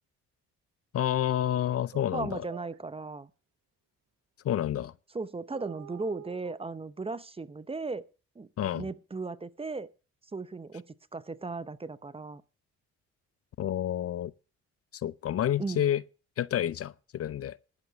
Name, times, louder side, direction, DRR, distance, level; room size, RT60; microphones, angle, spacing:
voice 1, 0.9-2.4 4.4-4.9 8.6-8.9 13.6-14.3 14.9-16.0 16.4-17.6, left 11 dB, 55° left, 0.5 m, -29 dB
Cat Desert Audio, 1.6-1.7 1.9-2.1 2.5-2.8 5.5-6.6, right 12 dB, 75° right, 0.8 m, -47 dB
voice 2, 2.1-3.3 5.1-8.0 8.4-8.5 8.8-9.9 10.3-10.8 11.1-12.4 15.6-15.9, right 3 dB, 20° right, 0.6 m, -36 dB
10.5 x 8.0 x 6.5 m
cardioid pair, 85°, 29 cm